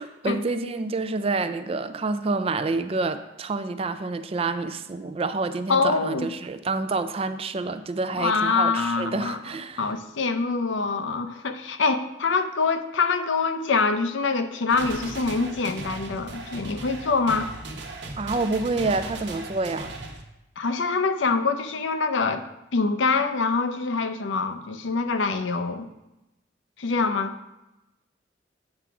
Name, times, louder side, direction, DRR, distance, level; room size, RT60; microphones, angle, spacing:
voice 1, 0.0-9.9 18.2-19.9, right 3 dB, 30° right, 10 dB, 0.4 m, -28 dB
voice 2, 5.7-6.3 8.1-9.4 9.8-17.5 20.6-22.5 22.7-25.9 26.8-27.3, left 4 dB, 85° left, 8 dB, 0.6 m, -25 dB
sound 1, 14.7-20.2, right 2 dB, 65° right, 1.0 m, -37 dB
8.6 x 3.5 x 5.9 m, 0.96 s
head